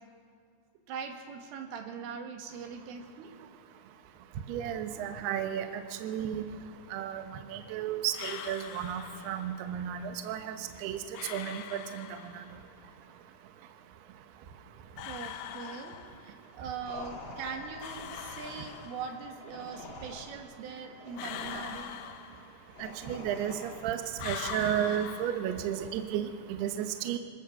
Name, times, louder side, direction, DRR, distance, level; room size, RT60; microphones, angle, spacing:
voice 1, 0.9-3.3 15.1-16.0 16.2-22.0, right 6 dB, 90° right, 3 dB, 4.5 m, -41 dB
voice 2, 3.3-16.7 18.1-18.4 19.6-20.0 21.8-27.2, right 10 dB, 70° right, 6 dB, 2.8 m, -35 dB
sound 1, 8.1-9.6 11.1-12.6 15.0-16.5 17.8-19.4 21.2-22.9 24.2-26.0, left 9 dB, 80° left, 3.3 m, -43 dB
sound 2, 16.8-24.2, left 2 dB, 50° left, 1.5 m, -46 dB
26.5 x 16.5 x 6.7 m, 2.4 s
omnidirectional pair, 5.6 m